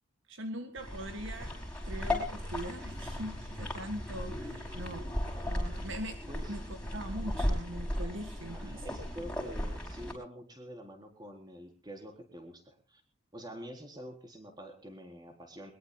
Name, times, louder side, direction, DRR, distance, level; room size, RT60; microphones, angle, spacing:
voice 1, 0.3-1.5 1.8-5.1 5.4-9.0, equal, 55° right, 7 dB, 1.8 m, -42 dB
sound 1, 0.8-10.1, left 1 dB, 5° left, 5.4 m, -36 dB
voice 2, 8.5-13.0 13.3-15.7, equal, 20° right, 4 dB, 4.0 m, -47 dB
23.0 x 21.5 x 2.3 m, 0.34 s
head